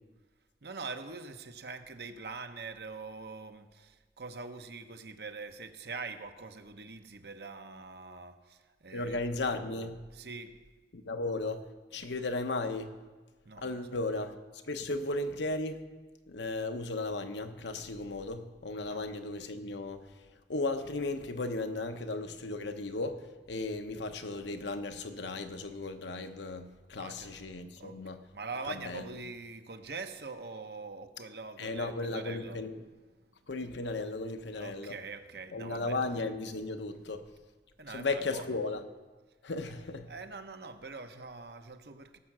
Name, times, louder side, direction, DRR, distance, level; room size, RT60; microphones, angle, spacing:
voice 1, 0.6-9.2 10.1-10.5 13.4-13.8 18.9-19.0 27.0-27.3 27.8-28.0 28.3-32.6 34.6-36.0 37.8-38.5 40.1-42.2, right 4 dB, 65° right, 8 dB, 0.9 m, -43 dB
voice 2, 8.9-10.0 10.9-12.9 13.6-15.8 16.3-28.2 28.7-29.2 31.6-32.8 33.5-35.0 35.5-37.3 37.9-38.8 39.4-40.1, left 2 dB, 85° left, 7 dB, 1.0 m, -35 dB
17.0 x 7.5 x 6.1 m, 1.3 s
head